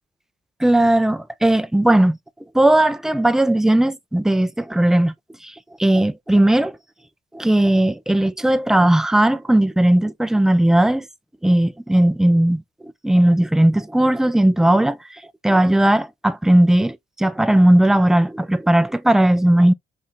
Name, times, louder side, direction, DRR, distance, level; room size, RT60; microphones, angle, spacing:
voice 1, 0.6-2.2 2.5-5.1 5.4-5.5 5.8-6.8 7.3-11.1 11.4-19.7, right 1 dB, ahead, 0.4 m, -17 dB
5.5 x 3.2 x 2.4 m
cardioid pair, 90°, 20 cm